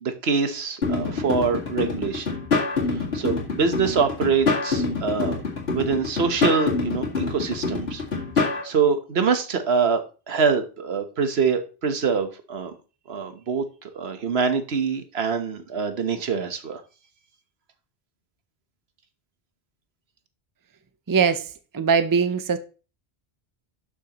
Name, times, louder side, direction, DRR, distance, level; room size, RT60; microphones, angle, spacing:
voice 1, 0.0-2.4 3.1-5.4 5.7-8.0 8.4-10.0 10.3-12.7 13.1-13.6 13.9-16.8, right 5 dB, 75° right, 1.3 m, -24 dB
sound 1, 0.8-8.6, left 4 dB, 75° left, 2.4 m, -26 dB
voice 2, 21.1-21.5 21.7-22.6, right 6 dB, 25° right, 0.6 m, -21 dB
12.0 x 6.3 x 2.9 m
omnidirectional pair, 1.1 m